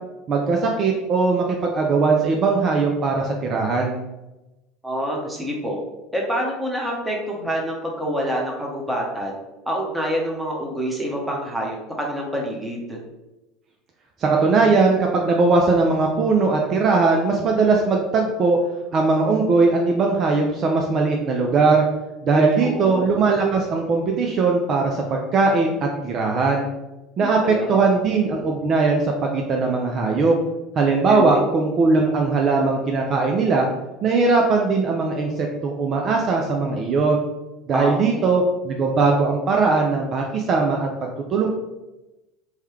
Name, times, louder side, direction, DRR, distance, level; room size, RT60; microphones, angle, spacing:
voice 1, 0.3-1.5 1.7-4.0 14.2-18.6 18.9-21.8 22.2-26.7 27.2-30.4 30.8-33.7 34.0-37.2 37.7-41.5, right 4 dB, 45° right, 1 dB, 0.4 m, -20 dB
voice 2, 4.8-5.8 6.1-9.4 9.7-13.0 22.3-23.1 27.2-27.8 31.1-31.5 37.7-38.2, equal, 10° right, -1 dB, 0.9 m, -27 dB
3.1 x 2.2 x 3.1 m, 1.0 s
hypercardioid pair, 70°, 0 cm